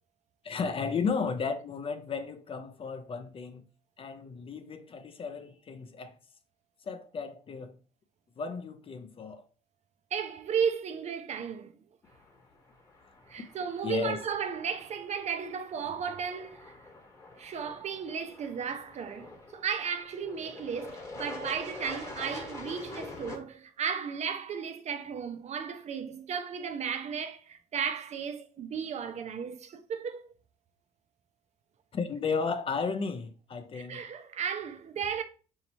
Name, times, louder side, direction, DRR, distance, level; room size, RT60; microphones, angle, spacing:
voice 1, 0.4-3.7 4.0-6.2 6.8-7.8 8.4-9.4 13.8-14.2 31.9-34.1, left 5 dB, 35° left, 0.4 m, -34 dB
voice 2, 10.1-11.7 13.3-16.8 17.4-30.3 33.7-35.2, right 7 dB, 40° right, 0.4 m, -34 dB
sound 1, 12.0-23.4, left 2 dB, 15° left, 1.1 m, -46 dB
4.3 x 2.7 x 2.9 m
cardioid pair, 110°, 17 cm